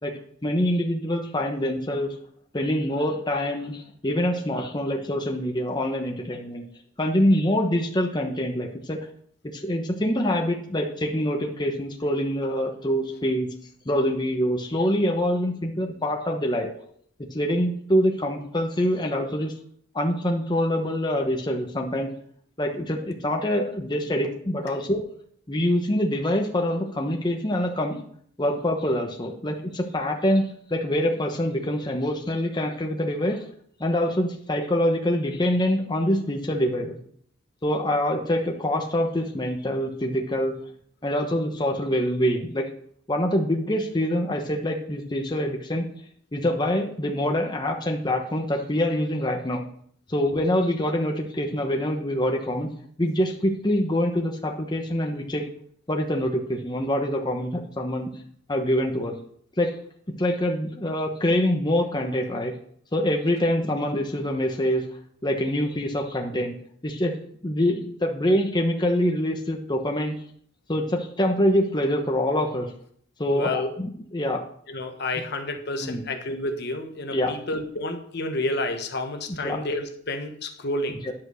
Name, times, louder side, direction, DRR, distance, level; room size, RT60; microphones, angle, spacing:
voice 1, 0.0-2.2 2.5-6.6 7.0-9.1 9.4-13.5 13.8-16.7 17.2-19.5 19.9-22.1 22.6-25.0 25.5-28.0 28.4-33.5 33.8-37.0 37.6-40.6 41.0-42.7 43.1-45.9 46.3-49.6 50.1-52.7 53.0-55.4 55.9-58.1 58.5-59.2 59.6-59.8 60.2-62.5 62.9-64.9 65.2-66.5 66.8-67.1 67.4-70.2 70.7-72.7 73.2-74.4 75.8-76.0 77.1-77.3 79.3-79.6 81.0-81.1, left 1 dB, 25° left, 2 dB, 1.1 m, -25 dB
voice 2, 73.3-73.7 74.7-81.0, left 2 dB, 60° left, 5 dB, 1.2 m, -30 dB
10.5 x 5.3 x 6.4 m, 0.62 s
head